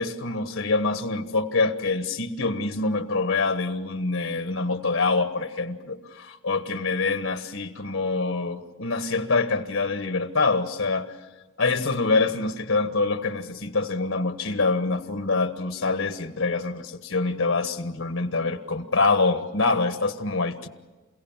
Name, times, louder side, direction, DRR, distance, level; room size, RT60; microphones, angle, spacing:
voice 1, 0.0-11.1 11.6-20.7, left 3 dB, 80° left, 1.4 m, -25 dB
29.0 x 16.5 x 7.4 m
head